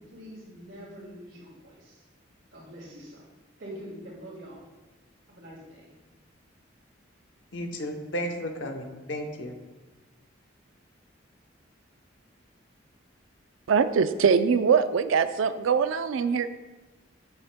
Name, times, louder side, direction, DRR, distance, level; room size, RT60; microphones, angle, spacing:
voice 1, 0.0-2.0 2.5-3.2 3.6-4.6 5.3-5.9, equal, 65° right, -3 dB, 2.2 m, -44 dB
voice 2, 7.5-9.6, equal, 70° left, 4 dB, 0.9 m, -33 dB
voice 3, 13.7-16.5, right 6 dB, 85° right, 11 dB, 0.4 m, -22 dB
8.8 x 7.9 x 2.2 m, 1.2 s
head